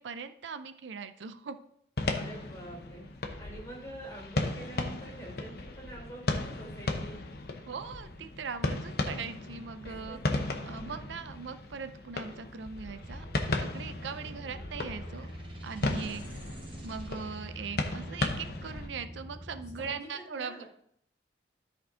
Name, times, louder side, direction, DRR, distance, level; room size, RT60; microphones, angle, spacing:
voice 1, 0.0-1.6 7.7-10.4 10.7-13.3 13.6-15.3 15.6-20.6, right 5 dB, 80° right, 10 dB, 0.5 m, -40 dB
sound 1, 2.0-18.9, left 2 dB, 55° left, 0.9 m, -36 dB
voice 2, 2.0-7.2 9.8-10.2 14.1-14.7 19.8-20.7, right 1 dB, 15° left, -4 dB, 3.3 m, -46 dB
sound 2, 13.0-19.9, equal, 30° right, 1.0 m, -45 dB
13.0 x 4.5 x 3.7 m, 0.69 s
head